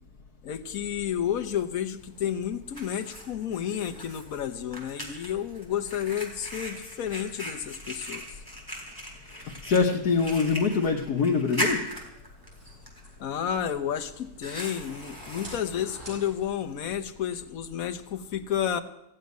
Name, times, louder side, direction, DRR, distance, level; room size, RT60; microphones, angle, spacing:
voice 1, 0.4-8.3 13.2-18.8, left 9 dB, 65° left, 7 dB, 1.3 m, -31 dB
Fire, 2.0-17.0, equal, 15° right, 3.2 m, -40 dB
voice 2, 9.6-11.9, left 5 dB, 85° left, 0 dB, 1.6 m, -24 dB
sound 1, 12.4-14.8 15.2-16.8, right 1 dB, 55° right, 6.7 m, -47 dB
16.0 x 7.7 x 9.4 m, 0.88 s
omnidirectional pair, 1.6 m